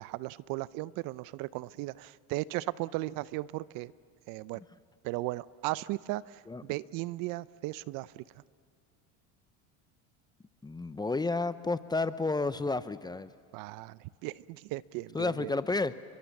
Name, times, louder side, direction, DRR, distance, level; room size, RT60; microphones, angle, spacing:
voice 1, 0.0-3.9 4.3-4.6 5.0-8.2 13.5-15.5, right 18 dB, 60° right, 19 dB, 0.7 m, -36 dB
voice 2, 10.6-13.3 15.1-15.9, left 3 dB, 10° left, 14 dB, 0.7 m, -31 dB
30.0 x 23.5 x 7.2 m, 2.1 s
supercardioid pair, 105°, 37 cm